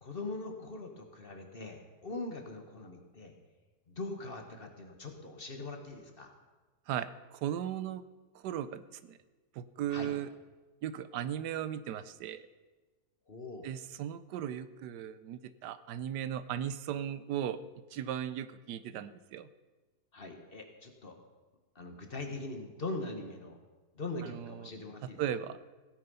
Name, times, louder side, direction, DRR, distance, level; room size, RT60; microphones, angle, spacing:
voice 1, 0.0-3.3 3.9-6.3 9.9-10.1 13.3-13.7 20.1-21.2 21.7-23.6 23.9-25.2, left 2 dB, 35° left, 4 dB, 1.5 m, -41 dB
voice 2, 6.9-8.0 8.3-9.2 9.6-10.3 10.8-12.5 13.6-17.6 17.9-19.5 24.2-24.7 25.2-25.6, right 10 dB, 85° right, 14 dB, 1.3 m, -37 dB
16.5 x 9.3 x 5.5 m, 1.3 s
omnidirectional pair, 1.7 m